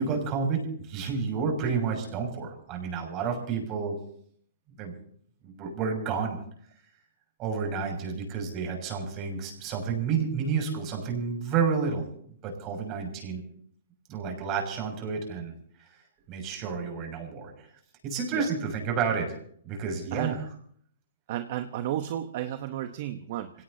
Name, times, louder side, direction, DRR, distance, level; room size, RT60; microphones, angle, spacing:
voice 1, 0.0-3.9 4.8-4.9 5.4-6.4 7.4-12.0 12.4-13.4 14.1-15.5 16.3-17.7 18.0-19.4 19.6-20.5, right 5 dB, 35° right, 2 dB, 6.6 m, -30 dB
voice 2, 21.3-23.5, right 12 dB, 50° right, 9 dB, 1.0 m, -32 dB
27.0 x 17.5 x 2.8 m, 0.63 s
hypercardioid pair, 135°, 0 cm